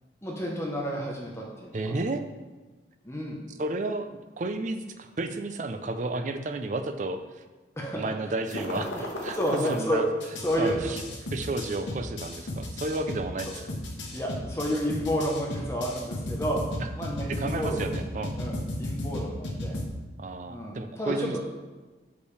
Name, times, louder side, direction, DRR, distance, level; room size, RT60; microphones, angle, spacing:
voice 1, 0.2-1.8 3.0-3.4 7.8-8.1 8.9-10.0 10.4-11.0 14.1-16.6 17.0-18.0 18.4-19.8 20.5-21.4, equal, 15° left, -2 dB, 0.8 m, -31 dB
voice 2, 1.7-2.2 3.6-4.1 4.4-7.2 7.9-8.9 9.2-10.0 10.6-11.0 11.3-13.6 16.8-16.9 17.3-18.3 20.2-21.4, right 2 dB, 45° right, 8 dB, 0.4 m, -32 dB
sound 1, 8.5-9.8 10.2-19.8, left 1 dB, 90° left, 1.1 m, -34 dB
6.6 x 5.4 x 3.3 m, 1.2 s
head